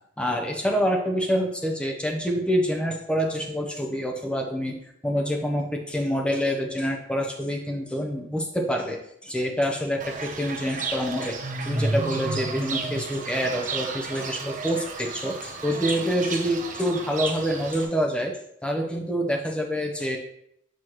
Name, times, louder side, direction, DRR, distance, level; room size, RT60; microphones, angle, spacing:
voice 1, 0.2-4.8 5.0-11.4 11.6-20.2, equal, 5° left, 1 dB, 0.7 m, -26 dB
Fowl / Bird, 10.0-17.8, right 3 dB, 40° right, 0.7 m, -32 dB
7.8 x 4.6 x 3.1 m, 0.74 s
head